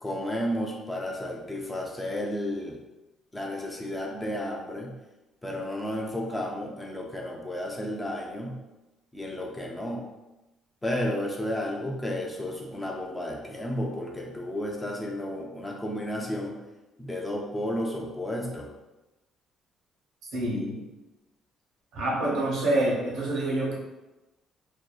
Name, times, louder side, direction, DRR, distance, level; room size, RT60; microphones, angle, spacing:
voice 1, 0.0-2.8 3.3-4.9 5.4-8.6 9.1-10.1 10.8-16.6 17.0-18.7, left 1 dB, 10° left, -1 dB, 0.3 m, -32 dB
voice 2, 20.3-20.8 21.9-23.7, right 1 dB, 85° right, -4 dB, 0.9 m, -26 dB
2.6 x 2.3 x 2.3 m, 1.0 s
cardioid pair, 160°, 0 cm